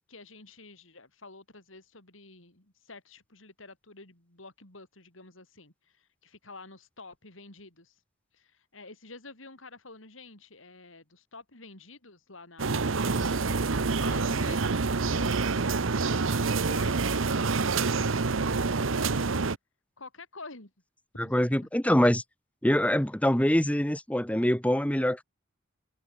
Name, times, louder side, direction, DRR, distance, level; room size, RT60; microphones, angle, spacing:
voice 1, 0.1-8.0 8.3-15.8 16.0-19.4 20.0-20.7 21.1-21.7, left 3 dB, 70° left, 4.9 m, -49 dB
sound 1, 12.6-19.6, right 4 dB, 75° right, 0.9 m, -27 dB
voice 2, 21.2-22.2 22.6-25.2, equal, 5° left, 1.1 m, -24 dB
head